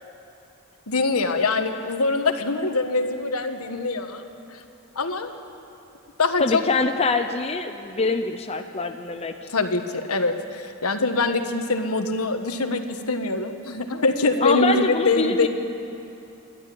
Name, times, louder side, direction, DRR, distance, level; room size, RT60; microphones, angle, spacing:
voice 1, 0.9-4.2 4.5-4.6 4.9-5.3 6.2-6.6 9.5-15.5, left 3 dB, 75° left, 7 dB, 1.4 m, -24 dB
voice 2, 6.4-9.3 14.4-15.5, left 3 dB, 30° left, 6 dB, 0.8 m, -24 dB
29.5 x 12.5 x 8.6 m, 2.8 s
head